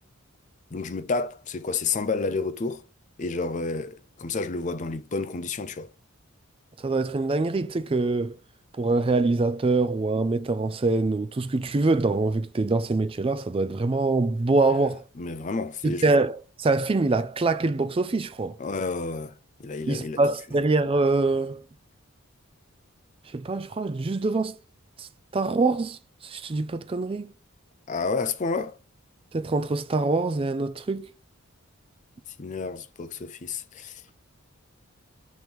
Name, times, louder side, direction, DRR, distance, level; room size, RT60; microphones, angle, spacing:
voice 1, 0.7-2.8 3.2-5.9 15.2-16.0 18.6-19.3 19.6-20.2 27.9-28.7 32.4-34.0, left 4 dB, 35° left, 0.4 m, -30 dB
voice 2, 6.8-8.4 8.8-15.0 15.8-18.6 19.9-21.6 23.3-24.5 25.0-25.1 25.3-27.3 29.3-31.1, right 3 dB, 25° right, 0.4 m, -24 dB
6.1 x 3.1 x 5.1 m
head